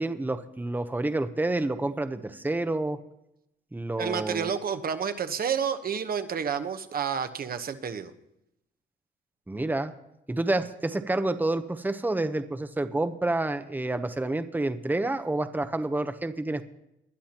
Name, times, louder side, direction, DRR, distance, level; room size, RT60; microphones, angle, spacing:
voice 1, 0.0-3.0 3.7-4.5 9.5-9.9 10.3-16.6, right 2 dB, 10° right, 9 dB, 0.9 m, -29 dB
voice 2, 4.0-8.1, right 7 dB, 50° right, 9 dB, 1.1 m, -30 dB
20.5 x 11.5 x 3.0 m, 0.83 s
cardioid pair, 90°, 20 cm